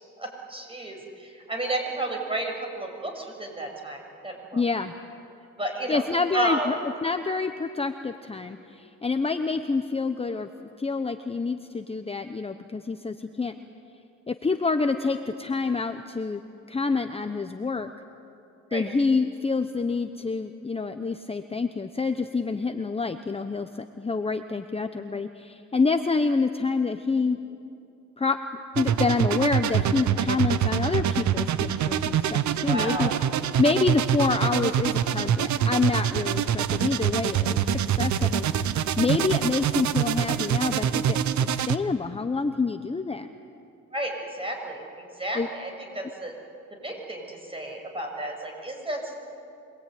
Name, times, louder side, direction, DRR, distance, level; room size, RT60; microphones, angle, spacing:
voice 1, 0.2-4.6 5.6-6.0 6.3-6.7 18.7-18.8 32.7-33.2 43.9-46.3 46.7-49.1, right 1 dB, 20° right, 2 dB, 6.8 m, -32 dB
voice 2, 4.5-4.9 5.9-10.5 10.8-13.5 14.3-16.4 16.7-17.9 18.7-27.4 28.2-28.4 28.8-33.1 33.6-38.5 39.0-43.3 45.3-45.5, left 4 dB, 20° left, 8 dB, 1.0 m, -27 dB
sound 1, 28.8-41.8, right 9 dB, 70° right, 1.0 m, -25 dB
26.0 x 21.0 x 9.4 m, 2.6 s
cardioid pair, 90°, 30 cm